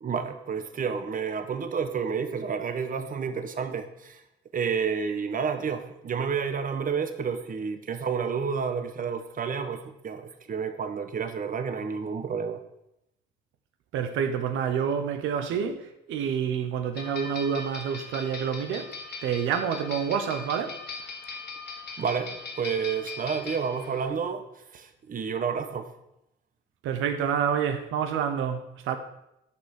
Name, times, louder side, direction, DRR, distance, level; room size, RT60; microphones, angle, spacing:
voice 1, 0.0-4.2 4.5-12.6 22.0-25.9, right 6 dB, 45° right, 1.1 m, -30 dB
voice 2, 13.9-18.9 19.2-20.8 26.8-29.0, right 7 dB, 90° right, 0.9 m, -28 dB
sound 1, 17.0-24.1, left 4 dB, 55° left, 1.9 m, -40 dB
10.0 x 5.7 x 6.4 m
cardioid pair, 90°, 20 cm